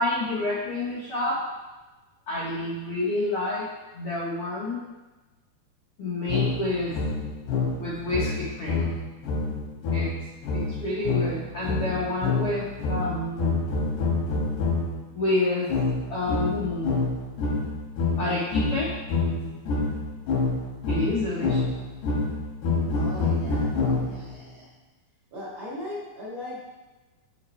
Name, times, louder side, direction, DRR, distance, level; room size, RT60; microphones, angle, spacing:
voice 1, 0.0-1.4 2.3-3.6 3.9-4.8 6.0-7.0 7.8-8.9 9.9-10.1 10.5-13.6 15.1-15.7 16.1-16.9 18.2-18.9 20.9-21.7, left 2 dB, 65° left, -7 dB, 1.3 m, -28 dB
sound 1, 6.3-15.0 15.7-24.4, left 3 dB, 85° left, 3.6 m, -27 dB
voice 2, 22.9-24.6 25.3-26.6, left 1 dB, 40° right, -8 dB, 2.1 m, -38 dB
7.5 x 5.3 x 4.4 m, 1.1 s
omnidirectional pair, 4.6 m